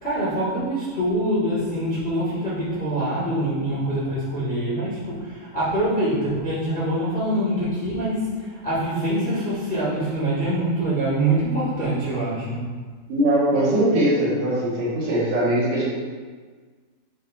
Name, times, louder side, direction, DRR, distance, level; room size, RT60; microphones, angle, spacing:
voice 1, 0.0-12.6, right 1 dB, 30° left, -11 dB, 1.2 m, -24 dB
voice 2, 13.1-15.8, right 1 dB, 60° right, -8 dB, 2.9 m, -21 dB
7.4 x 7.2 x 2.7 m, 1.5 s
omnidirectional pair, 4.8 m